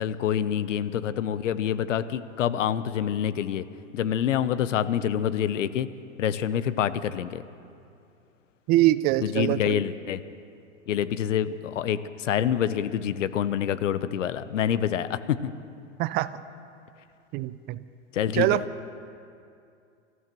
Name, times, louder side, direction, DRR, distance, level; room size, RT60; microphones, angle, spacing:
voice 1, 0.0-3.6 3.9-5.9 6.2-7.4 9.2-10.2 10.9-15.5 18.1-18.6, left 9 dB, 75° left, 14 dB, 0.8 m, -26 dB
voice 2, 8.7-9.8 16.0-16.3 17.3-17.8 18.3-18.6, right 15 dB, 25° right, 16 dB, 0.4 m, -23 dB
26.0 x 14.5 x 3.0 m, 2.5 s
hypercardioid pair, 105°, 38 cm